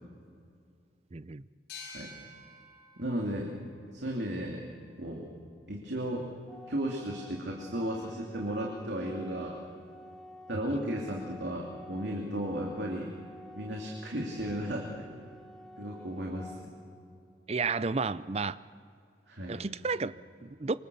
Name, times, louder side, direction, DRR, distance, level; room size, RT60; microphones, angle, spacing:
voice 1, 1.1-1.4 17.5-18.6 19.5-20.7, right 4 dB, 35° right, 16 dB, 0.5 m, -32 dB
sound 1, 1.7-5.1, left 3 dB, 70° left, 7.8 m, -51 dB
voice 2, 3.0-3.5 3.9-4.6 5.0-5.3 5.7-6.3 6.7-9.6 10.5-13.1 13.5-15.1 15.8-16.5 19.3-19.6, equal, 70° right, -1 dB, 2.9 m, -34 dB
Organ, 6.5-17.5, equal, ahead, 1.7 m, -50 dB
26.0 x 25.0 x 7.0 m, 2.4 s
head